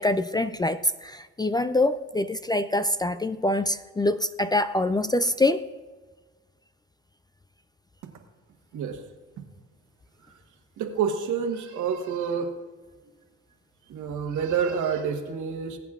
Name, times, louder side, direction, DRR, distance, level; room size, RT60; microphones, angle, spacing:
voice 1, 0.0-5.6, left 1 dB, 15° left, 11 dB, 0.3 m, -25 dB
voice 2, 10.8-12.5 13.9-15.8, right 7 dB, 75° right, 5 dB, 1.3 m, -28 dB
20.0 x 8.2 x 2.4 m, 1.3 s
cardioid pair, 90°, 30 cm